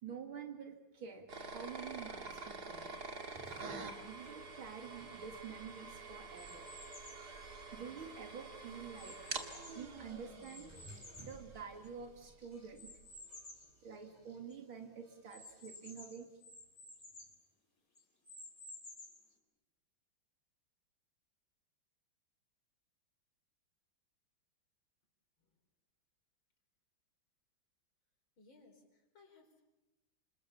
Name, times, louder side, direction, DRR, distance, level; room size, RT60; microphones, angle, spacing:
voice 1, 0.0-2.9 3.6-6.7 7.7-9.2 9.7-10.7 11.2-12.9 13.8-16.3, right 6 dB, 80° right, 5 dB, 3.0 m, -48 dB
sound 1, 1.3-12.1, right 3 dB, 50° right, 2.8 m, -47 dB
sound 2, 2.8-16.4, right 1 dB, 15° right, 3.6 m, -63 dB
sound 3, 6.3-7.3 7.9-9.9 10.4-12.1 12.7-13.7 14.2-14.3 14.5-14.6 15.3-17.4 17.9-19.3, left 2 dB, 40° left, 4.4 m, -54 dB
voice 2, 28.4-29.6, left 3 dB, 75° left, 3 dB, 5.2 m, -63 dB
28.5 x 26.5 x 7.0 m, 1.0 s
omnidirectional pair, 2.2 m